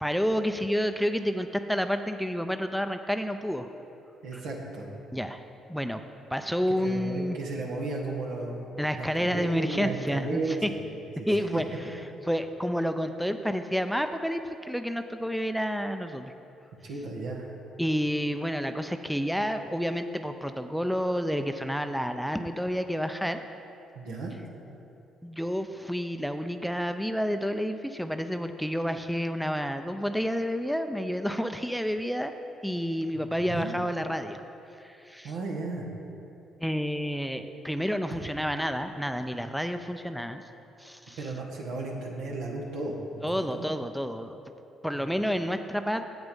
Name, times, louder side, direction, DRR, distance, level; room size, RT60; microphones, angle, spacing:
voice 1, 0.0-3.7 4.3-4.4 5.1-6.0 6.3-7.4 8.8-10.7 11.3-16.3 17.8-23.4 25.2-32.3 32.6-34.4 34.8-35.3 36.6-40.4 40.8-41.3 43.2-44.4 44.8-46.1, equal, ahead, 8 dB, 0.5 m, -30 dB
voice 2, 4.2-4.9 6.8-10.7 11.0-12.0 16.8-17.5 23.9-24.3 33.4-33.7 35.2-35.9 41.2-43.3 43.5-43.6 44.9-45.0, right 3 dB, 80° right, -2 dB, 1.6 m, -34 dB
8.1 x 7.8 x 5.4 m, 2.9 s
supercardioid pair, 60°, 0 cm